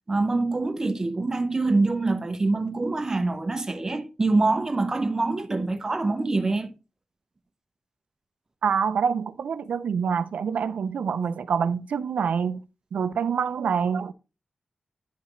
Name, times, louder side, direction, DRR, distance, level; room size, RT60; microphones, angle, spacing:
voice 1, 0.1-6.7, right 3 dB, 25° right, 0.8 m, -25 dB
voice 2, 8.6-12.6 12.9-14.1, right 6 dB, 85° right, 0.5 m, -26 dB
9.8 x 5.6 x 3.1 m
wide cardioid pair, 165°, 2 cm